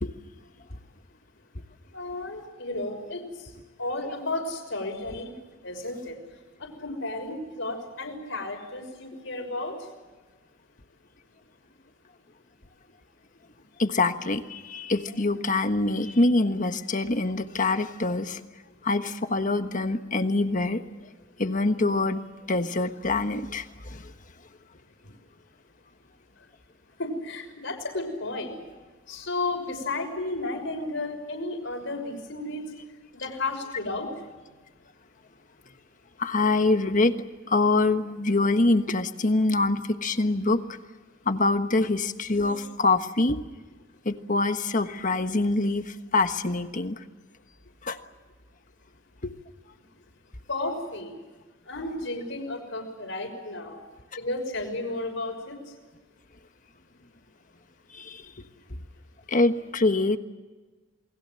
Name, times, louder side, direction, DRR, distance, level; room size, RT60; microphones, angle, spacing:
voice 1, 1.9-3.5 3.8-5.3 5.6-6.2 6.6-9.7 27.0-28.6 29.1-32.6 33.1-34.1 50.5-51.1 51.7-53.8 54.2-55.6, left 2 dB, 70° left, 4 dB, 6.1 m, -33 dB
voice 2, 13.8-18.4 18.8-20.8 21.4-22.2 22.5-24.1 36.2-37.1 37.5-40.6 41.2-43.4 44.0-47.0 47.8-48.0 49.2-49.3 57.9-58.2 59.3-60.2, left 2 dB, 40° left, 8 dB, 1.4 m, -25 dB
28.5 x 21.0 x 7.8 m, 1.3 s
head